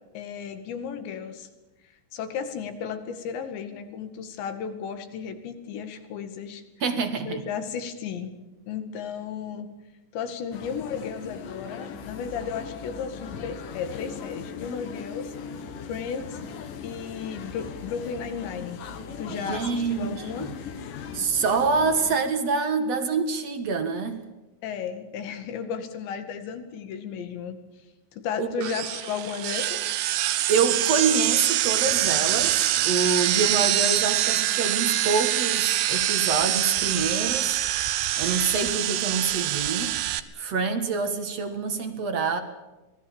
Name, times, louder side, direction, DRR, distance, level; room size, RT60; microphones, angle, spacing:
voice 1, 0.1-1.5 2.1-6.6 7.3-8.4 8.7-9.7 10.1-15.4 15.8-16.4 16.8-18.8 19.2-20.5 24.6-27.6 28.1-29.9, left 7 dB, 85° left, 8 dB, 4.4 m, -34 dB
voice 2, 6.8-7.4 19.3-20.5 21.1-24.2 28.4-28.7 30.5-37.6 38.2-40.0 40.3-42.4, right 5 dB, 50° right, 8 dB, 2.2 m, -26 dB
sound 1, 10.5-22.2, left 6 dB, 60° left, 2.9 m, -39 dB
sound 2, 28.6-40.2, right 13 dB, 70° right, 2.7 m, -25 dB
26.0 x 19.0 x 7.2 m, 1.1 s
omnidirectional pair, 5.0 m